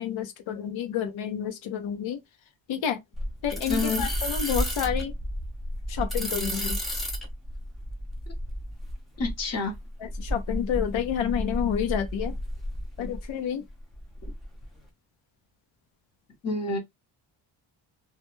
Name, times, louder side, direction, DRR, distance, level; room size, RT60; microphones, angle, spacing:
voice 1, 0.0-2.2 2.7-3.0 3.4-5.1 5.9-6.8 10.0-12.3 13.0-13.6, left 9 dB, 85° left, 0.7 m, -29 dB
sound 1, 3.1-13.3 13.7-14.7, equal, ahead, 0.5 m, -32 dB
voice 2, 3.7-4.1 9.2-9.8 16.4-16.8, left 3 dB, 35° left, 0.9 m, -28 dB
2.2 x 2.2 x 3.0 m
wide cardioid pair, 180°, 46 cm